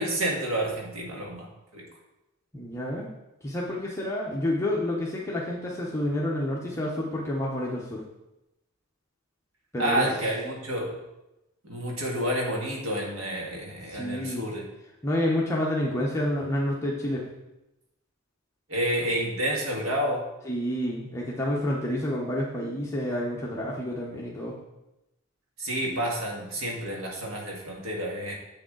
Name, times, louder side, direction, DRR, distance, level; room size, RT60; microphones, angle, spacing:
voice 1, 0.0-1.5 1.7-1.9 9.8-11.0 11.6-14.6 18.7-20.2 25.6-28.4, right 1 dB, 65° right, -2 dB, 1.9 m, -29 dB
voice 2, 2.5-3.1 3.4-8.0 9.7-10.1 13.9-14.5 15.0-17.3 20.5-24.5, left 1 dB, 15° left, -4 dB, 0.9 m, -29 dB
7.4 x 6.6 x 3.8 m, 0.93 s
head